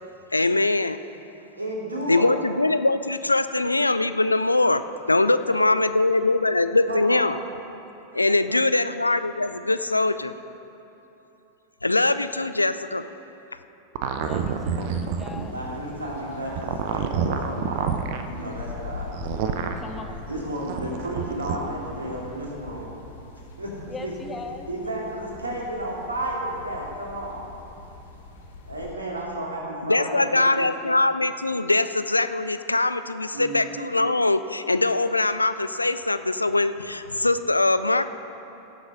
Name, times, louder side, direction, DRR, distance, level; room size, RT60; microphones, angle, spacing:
voice 1, 0.3-1.0 2.1-4.8 5.1-7.4 8.1-10.3 11.8-13.1 29.8-38.0, left 2 dB, 85° left, 12 dB, 0.4 m, -22 dB
voice 2, 1.6-2.3 6.9-7.2 15.4-17.9 18.2-19.1 20.3-22.9 23.6-23.7 24.0-24.1 24.7-27.4 28.6-30.7 33.3-33.7, right 1 dB, 80° right, -3 dB, 2.6 m, -32 dB
voice 3, 5.5-5.9 8.2-8.7 14.2-15.6 19.8-20.3 23.9-24.7, left 4 dB, 15° left, 4 dB, 0.9 m, -40 dB
sound 1, 14.0-15.5 16.5-18.2 19.1-19.8 20.6-21.6, right 7 dB, 50° right, 0.7 m, -28 dB
sound 2, 14.2-28.9, left 3 dB, 60° left, 1.4 m, -43 dB
sound 3, 14.3-22.6, right 1 dB, 30° right, 1.8 m, -48 dB
17.0 x 7.1 x 5.3 m, 3.0 s
figure-of-eight pair, 90°, 0 cm